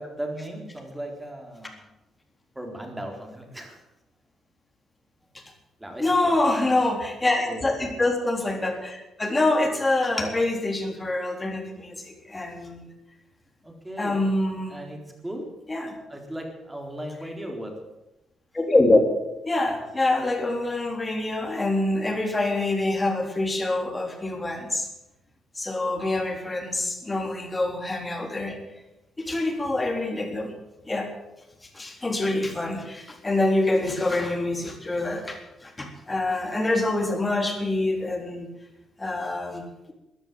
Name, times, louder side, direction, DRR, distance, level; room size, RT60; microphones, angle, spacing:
voice 1, 0.0-1.9 2.6-3.8 5.8-6.3 6.6-6.7 7.5-7.7 13.6-14.2 14.7-15.5 16.1-17.7 27.0-27.1, right 1 dB, 10° right, 2 dB, 4.0 m, -37 dB
voice 2, 6.0-12.9 14.0-14.8 15.7-15.9 18.5-19.0 19.4-24.9 25.5-28.6 29.2-30.5 30.9-31.1 31.6-38.5 39.0-39.9, left 2 dB, 20° left, 3 dB, 3.6 m, -25 dB
14.5 x 10.5 x 8.6 m, 0.94 s
cardioid pair, 90°, 0 cm